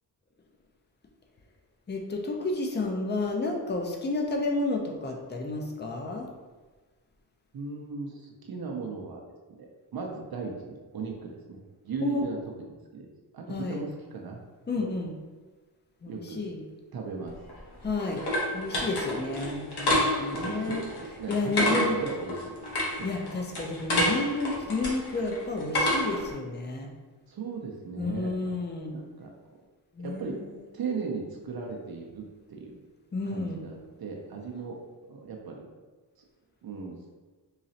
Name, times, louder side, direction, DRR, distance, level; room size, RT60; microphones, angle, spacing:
voice 1, 1.9-6.3 12.0-12.2 13.5-13.8 14.7-15.1 16.0-16.6 17.8-18.2 18.5-20.8 21.3-22.0 23.0-26.9 28.0-29.0 29.9-30.6 33.1-33.6, left 3 dB, 25° left, 2 dB, 0.5 m, -31 dB
voice 2, 7.5-9.2 9.6-13.1 13.3-14.4 14.7-14.9 16.1-16.5 16.9-17.3 20.3-22.6 23.6-23.8 27.3-28.6 28.9-29.4 30.0-30.4 30.7-32.8 33.3-34.8 35.1-35.7 36.6-37.0, right 4 dB, 60° right, 0 dB, 0.6 m, -37 dB
sound 1, 17.3-26.3, left 1 dB, 65° left, 1.1 m, -29 dB
4.0 x 3.0 x 2.7 m, 1.3 s
wide cardioid pair, 125°, 42 cm